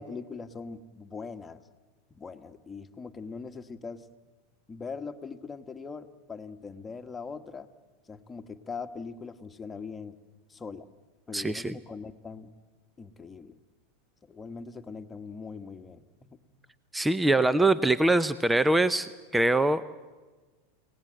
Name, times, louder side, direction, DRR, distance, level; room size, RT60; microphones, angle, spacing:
voice 1, 0.0-1.6 2.1-4.1 4.7-7.7 8.1-10.2 10.5-10.9 11.3-12.5 13.0-13.6 14.3-16.4, left 5 dB, 20° left, 7 dB, 1.5 m, -41 dB
voice 2, 11.3-11.8 16.9-19.8, right 2 dB, 10° right, 14 dB, 0.7 m, -23 dB
29.5 x 18.5 x 7.8 m, 1.3 s
hypercardioid pair, 100°, 0 cm